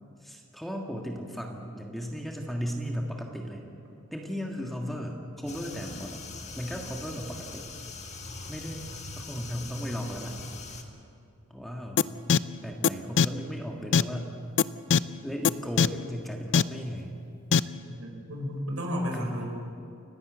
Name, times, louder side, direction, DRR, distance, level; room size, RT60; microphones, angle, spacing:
voice 1, 0.2-3.6 4.1-6.2 6.5-7.6 8.5-8.8 9.2-10.4 11.5-12.0 12.6-14.3 15.2-17.2 19.1-19.4, equal, ahead, 0 dB, 1.6 m, -36 dB
sound 1, 5.5-10.8, left 3 dB, 30° left, 1.6 m, -42 dB
sound 2, 12.0-12.1 12.3-12.4 12.8-12.9 13.2-13.3 13.9-14.0 14.6-14.7 14.9-15.0 15.4-15.5 15.8-15.9 16.5-16.6 17.5-17.6, left 6 dB, 60° left, 0.5 m, -19 dB
voice 2, 17.9-19.5, equal, 70° right, 0 dB, 5.1 m, -33 dB
29.5 x 11.5 x 8.0 m, 2.5 s
head